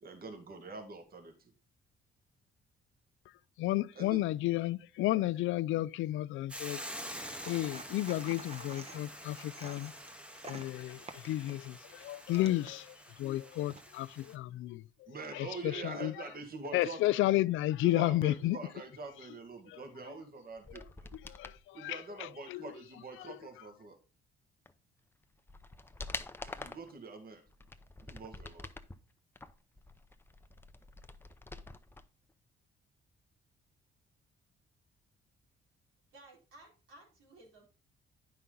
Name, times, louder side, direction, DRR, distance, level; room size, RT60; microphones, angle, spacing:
voice 1, 0.0-1.5 4.0-4.2 15.1-17.0 17.8-21.1 21.7-24.0 26.4-27.4 28.0-28.7, right 4 dB, 50° right, 1.9 m, -45 dB
voice 2, 3.6-6.8 7.5-9.9 10.4-16.1 16.7-18.6 19.7-19.8 21.3-22.6 23.2-23.3, left 16 dB, 85° left, 0.4 m, -32 dB
Hiss / Boiling, 6.5-14.3, equal, 5° right, 1.0 m, -47 dB
sound 1, 7.0-12.7 13.5-14.3, right 4 dB, 30° right, 1.0 m, -51 dB
sound 2, 20.6-21.6 24.7-24.8 25.2-26.9 27.5-29.0 29.4-32.0 32.3-32.4, left 2 dB, 10° left, 0.7 m, -46 dB
voice 3, 36.1-37.7, right 2 dB, 90° right, 4.5 m, -57 dB
9.7 x 5.7 x 3.8 m
cardioid pair, 90°, 20 cm